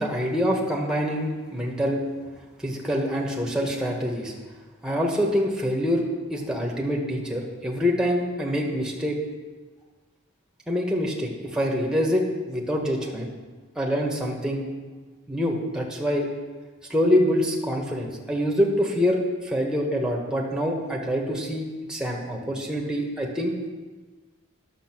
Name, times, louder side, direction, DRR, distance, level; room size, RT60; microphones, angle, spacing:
voice 1, 0.0-2.0 2.6-4.3 4.8-6.0 6.3-9.2 10.7-13.3 13.7-14.6 15.3-16.3 16.9-23.5, equal, 5° right, -1 dB, 1.3 m, -25 dB
10.5 x 7.2 x 6.0 m, 1.3 s
head